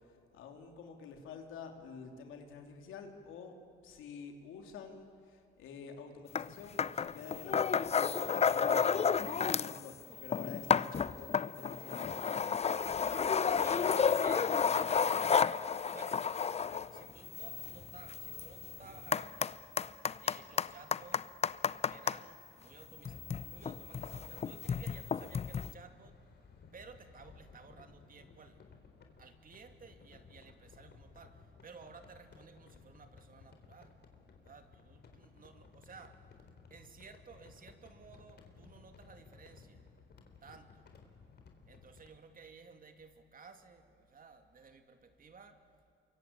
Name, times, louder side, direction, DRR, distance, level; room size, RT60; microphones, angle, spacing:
voice 1, 0.0-3.6 3.8-12.8, left 5 dB, 90° left, 3 dB, 3.3 m, -49 dB
sound 1, 6.3-6.5 6.8-9.8 10.1-22.2 23.0-25.7, left 6 dB, 30° left, 0.6 m, -32 dB
voice 2, 11.7-12.0 13.4-14.5 15.1-15.6 15.9-16.2 16.9-19.7 20.2-21.3 21.9-26.2 26.7-28.6 29.2-34.0 34.4-36.4 36.7-39.8 40.4-40.9 41.7-45.6, right 5 dB, 45° right, 6 dB, 2.6 m, -55 dB
sound 2, 25.5-42.2, left 5 dB, 55° left, 3.8 m, -59 dB
28.0 x 23.5 x 8.9 m, 2.3 s
cardioid pair, 90°, 20 cm